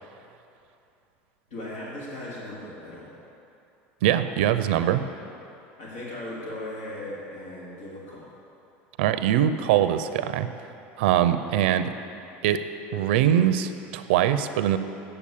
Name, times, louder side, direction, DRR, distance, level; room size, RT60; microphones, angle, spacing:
voice 1, 1.5-3.1 5.8-8.3, left 1 dB, 85° left, -7 dB, 3.0 m, -37 dB
voice 2, 4.0-5.0 9.0-10.5 11.0-11.9 12.4-14.8, right 10 dB, 85° right, 11 dB, 0.5 m, -22 dB
8.7 x 6.9 x 8.5 m, 2.7 s
supercardioid pair, 115°, 6 cm